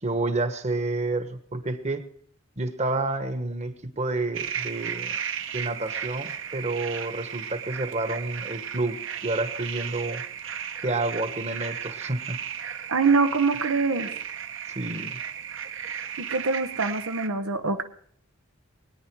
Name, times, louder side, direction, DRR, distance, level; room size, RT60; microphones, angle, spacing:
voice 1, 0.0-2.1 2.6-5.2 5.5-10.2 10.8-12.4 14.7-15.1, right 2 dB, 30° right, 8 dB, 1.3 m, -29 dB
sound 1, 4.3-17.3, right 8 dB, 65° right, 1.3 m, -35 dB
voice 2, 12.9-14.1 16.2-17.8, right 4 dB, 90° right, 7 dB, 1.0 m, -24 dB
22.0 x 9.8 x 4.7 m, 0.63 s
head